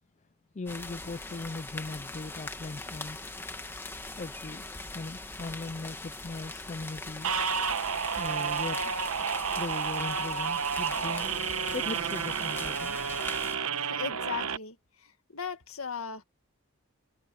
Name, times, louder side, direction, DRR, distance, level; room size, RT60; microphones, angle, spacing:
voice 1, 0.5-3.3 4.2-7.3 8.2-8.9 9.6-11.3 11.7-13.0, left 3 dB, 30° left, 0.4 m, -39 dB
sound 1, 0.7-13.6, left 2 dB, 10° left, 1.3 m, -41 dB
sound 2, 7.2-14.6, right 6 dB, 80° right, 1.1 m, -31 dB
voice 2, 13.8-16.2, left 6 dB, 75° left, 1.9 m, -38 dB
head